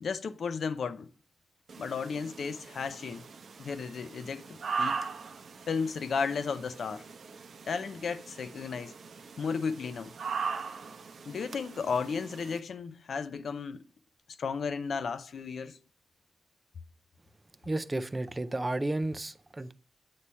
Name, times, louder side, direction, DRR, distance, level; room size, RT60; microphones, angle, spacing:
voice 1, 0.0-1.1 1.8-3.3 3.6-5.1 5.7-7.1 7.7-8.9 9.4-10.1 11.3-13.8 14.3-15.8, left 5 dB, 65° left, 0.4 m, -34 dB
sound 1, 1.7-12.6, right 5 dB, 65° right, 0.7 m, -40 dB
voice 2, 17.6-19.7, right 2 dB, 20° right, 0.4 m, -32 dB
8.2 x 3.2 x 5.4 m
wide cardioid pair, 155°, 0 cm